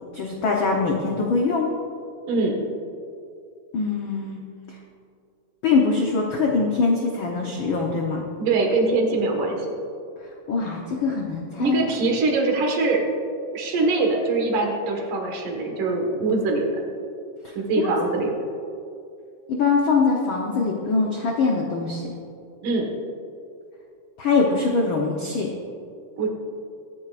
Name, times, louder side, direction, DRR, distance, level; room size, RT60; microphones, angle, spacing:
voice 1, 0.1-1.7 3.7-4.4 5.6-8.2 10.5-11.8 17.4-17.5 19.5-22.1 24.2-25.5, left 4 dB, 90° left, -1 dB, 1.0 m, -23 dB
voice 2, 2.3-2.6 8.4-9.7 11.6-13.0 13.5-16.7 17.6-18.3 22.6-22.9 26.2-26.3, right 3 dB, 80° right, 1 dB, 3.2 m, -23 dB
23.0 x 9.7 x 2.5 m, 2.5 s
omnidirectional pair, 3.7 m